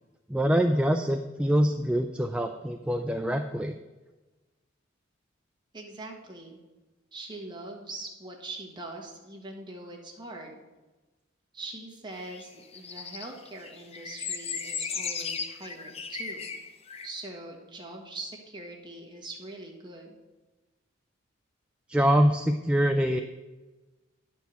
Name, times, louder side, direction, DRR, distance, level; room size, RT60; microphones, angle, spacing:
voice 1, 0.3-3.8 21.9-23.2, equal, 5° right, 5 dB, 0.3 m, -24 dB
voice 2, 5.7-6.6 7.1-10.6 11.5-16.5 17.0-20.2, right 2 dB, 25° right, 0 dB, 1.5 m, -42 dB
sound 1, 12.3-17.1, left 5 dB, 30° left, 0.6 m, -36 dB
10.5 x 4.6 x 6.9 m, 1.2 s
head